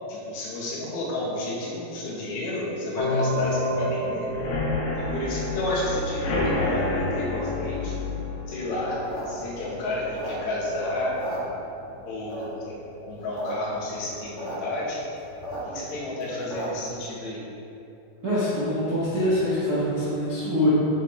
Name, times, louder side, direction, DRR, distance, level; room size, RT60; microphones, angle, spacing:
voice 1, 0.1-4.3 4.9-8.0 8.5-9.0 9.3-11.2 12.0-15.0 15.6-17.4, left 1 dB, 80° left, -5 dB, 3.8 m, -31 dB
sound 1, 3.0-5.9, left 1 dB, 45° right, 1.8 m, -29 dB
sound 2, 4.3-11.9 12.3-12.7 13.0-13.1 13.4-13.5, left 2 dB, 65° left, 2.7 m, -30 dB
sound 3, 8.9-10.7 11.0-11.9 12.3-12.7 13.1-13.5 13.8-13.9 14.0-14.6 14.9-16.9, equal, 30° left, 1.4 m, -36 dB
voice 2, 18.2-20.7, equal, 75° right, -10 dB, 0.8 m, -24 dB
8.5 x 8.2 x 3.6 m, 2.9 s
omnidirectional pair, 4.8 m